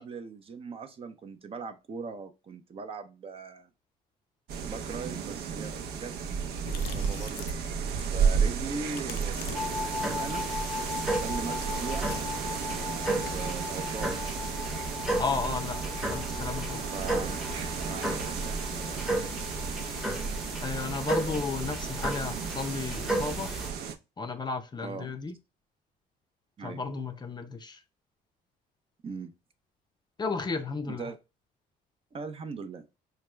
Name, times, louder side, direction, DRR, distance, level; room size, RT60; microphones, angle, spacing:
voice 1, 0.0-3.7 4.6-6.2 6.7-7.5 7.8-10.5 11.1-12.1 12.7-14.2 16.9-17.4 17.8-19.2 24.8-25.1 26.6-26.8 29.0-29.3 30.9-31.2 32.1-32.9, right 4 dB, 35° right, 0.6 m, -40 dB
sound 1, 4.5-23.9, right 6 dB, 70° right, 0.7 m, -33 dB
sound 2, 6.5-13.5, left 10 dB, 90° left, 0.5 m, -46 dB
sound 3, 9.5-23.7, equal, ahead, 0.8 m, -33 dB
voice 2, 15.2-15.8 16.1-16.9 20.6-23.5 24.2-25.4 26.6-27.8 30.2-31.1, left 4 dB, 25° left, 0.5 m, -33 dB
4.8 x 2.2 x 3.2 m
cardioid pair, 110°, 17 cm